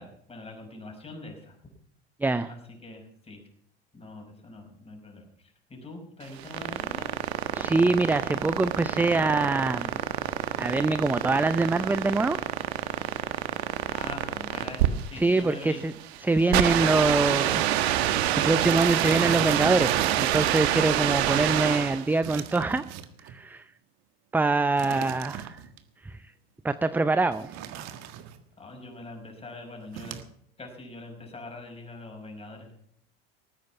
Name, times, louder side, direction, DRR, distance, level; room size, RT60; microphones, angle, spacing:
voice 1, 0.0-1.6 2.4-3.4 3.9-7.1 13.9-15.8 24.8-25.3 28.6-30.2 30.6-32.7, left 2 dB, 20° left, 3 dB, 5.6 m, -43 dB
voice 2, 2.2-2.5 7.5-10.0 10.6-12.4 15.2-15.9 16.2-22.8 23.2-23.6 24.3-25.6 26.0-26.2 26.6-27.5, right 3 dB, 5° right, 13 dB, 0.5 m, -24 dB
Colorino Battery out in AM Radio, 6.2-22.1, right 12 dB, 80° right, 1.3 m, -27 dB
sound 1, 13.5-13.6 14.2-14.3 14.5-14.6 14.8-15.1 15.5-15.6 16.0-16.1 16.8-16.9 17.1-17.3 17.7-17.8 18.6-20.9 22.2-23.4 24.8-25.8 27.3-28.4 29.9-30.2, right 10 dB, 55° right, 1.7 m, -38 dB
19.5 x 9.4 x 5.8 m, 0.67 s
supercardioid pair, 100°, 31 cm